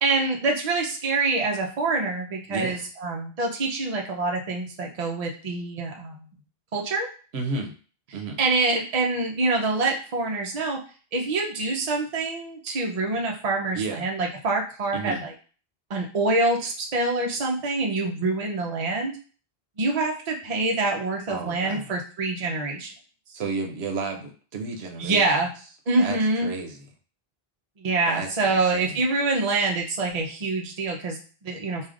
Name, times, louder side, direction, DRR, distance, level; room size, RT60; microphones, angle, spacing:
voice 1, 0.0-6.3 6.7-7.1 8.4-10.8 11.1-15.3 15.9-19.2 19.8-22.9 25.0-25.5 25.9-26.5 27.8-31.9, right 3 dB, 45° right, 1 dB, 0.7 m, -26 dB
voice 2, 2.5-2.9 7.3-7.7 8.1-8.4 13.7-14.1 14.9-15.3 21.3-21.8 23.3-25.2 26.0-26.8 28.1-29.0, right 4 dB, 90° right, 3 dB, 0.9 m, -32 dB
4.8 x 2.4 x 2.4 m, 0.38 s
omnidirectional pair, 1.0 m